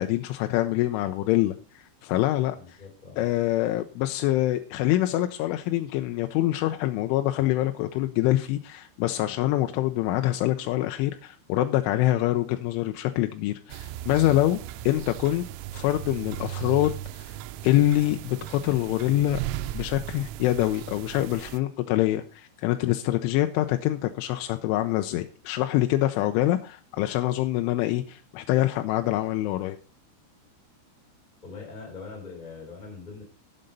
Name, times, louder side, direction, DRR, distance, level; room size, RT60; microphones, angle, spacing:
voice 1, 0.0-1.6 2.0-2.8 3.2-14.6 14.9-15.5 15.7-17.3 17.6-19.4 19.7-29.8, left 15 dB, 80° left, 7 dB, 3.1 m, -25 dB
voice 2, 2.6-3.2 31.4-33.2, left 4 dB, 10° left, -1 dB, 3.7 m, -42 dB
sound 1, 13.7-21.6, right 12 dB, 90° right, 3.3 m, -37 dB
11.5 x 7.9 x 5.4 m, 0.36 s
omnidirectional pair, 5.7 m